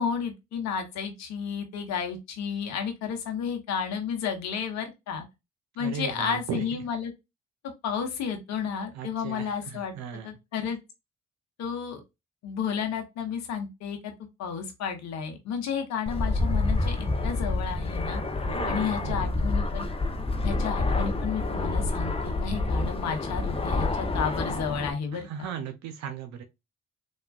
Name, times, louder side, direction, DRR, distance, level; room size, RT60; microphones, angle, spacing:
voice 1, 0.0-5.3 5.8-7.1 7.8-10.0 10.2-10.8 11.6-12.0 12.4-14.1 14.4-18.2 18.7-19.9 20.4-25.5, left 7 dB, 65° left, 0.8 m, -32 dB
voice 2, 5.8-6.8 8.9-10.3 18.5-19.3 25.1-26.4, right 8 dB, 70° right, 0.6 m, -37 dB
Fixed-wing aircraft airplane, 16.1-24.9, left 3 dB, 20° left, 0.6 m, -28 dB
3.4 x 2.3 x 2.3 m
hypercardioid pair, 45°, 29 cm